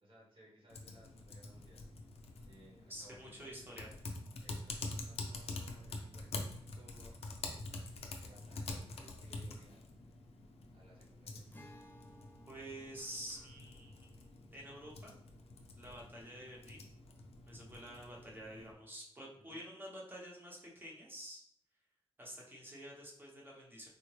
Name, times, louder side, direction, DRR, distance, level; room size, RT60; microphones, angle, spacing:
voice 1, 0.0-1.8 2.4-3.6 4.4-7.1 7.4-9.9 10.7-11.5 13.8-13.9 19.4-19.6, right 1 dB, 60° right, -4 dB, 1.2 m, -62 dB
Typing, 0.7-18.7, left 2 dB, 75° left, 0.5 m, -47 dB
voice 2, 2.9-3.9 12.5-14.0 14.5-15.2 15.8-16.8 17.5-21.4 22.2-23.9, equal, 20° right, -3 dB, 0.8 m, -49 dB
Acoustic guitar, 11.5-17.0, equal, 20° left, 0.4 m, -62 dB
3.5 x 2.1 x 3.2 m, 0.68 s
wide cardioid pair, 100°, 11 cm